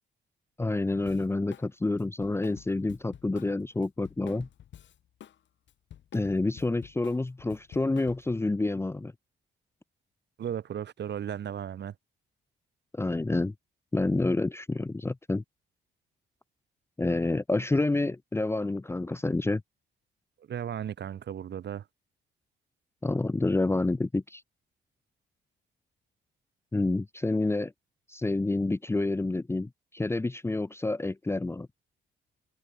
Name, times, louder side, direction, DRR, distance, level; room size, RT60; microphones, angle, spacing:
voice 1, 0.6-4.5 6.1-9.1 12.9-13.5 13.9-15.4 17.0-19.6 23.0-24.4 26.7-27.7 28.1-31.7, left 2 dB, 10° left, 0.7 m, -28 dB
Drum kit, 1.1-1.7 2.0-5.4 5.7-8.4, left 10 dB, 65° left, 3.4 m, -49 dB
voice 2, 10.4-11.9 20.5-21.8, right 9 dB, 60° right, 4.7 m, -35 dB
cardioid pair, 90°, 20 cm